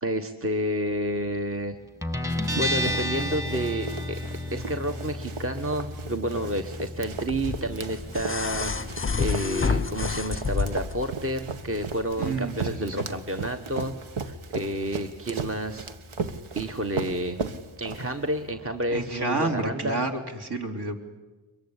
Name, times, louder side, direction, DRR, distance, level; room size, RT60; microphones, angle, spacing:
voice 1, 0.0-1.7 2.6-4.2 4.5-13.9 14.2-15.9 16.5-17.4 17.8-20.0, right 1 dB, 25° right, 5 dB, 1.4 m, -30 dB
Guitar, 2.0-19.2, left 1 dB, 5° right, 1.7 m, -36 dB
Run, 2.3-18.4, right 4 dB, 85° right, 1.4 m, -37 dB
sound 1, 7.3-11.1 12.3-12.4, left 5 dB, 25° left, 0.8 m, -28 dB
voice 2, 12.2-13.0 18.9-20.1 20.4-21.0, right 3 dB, 50° right, 3 dB, 3.5 m, -29 dB
24.0 x 22.0 x 10.0 m, 1.2 s
wide cardioid pair, 80°, 48 cm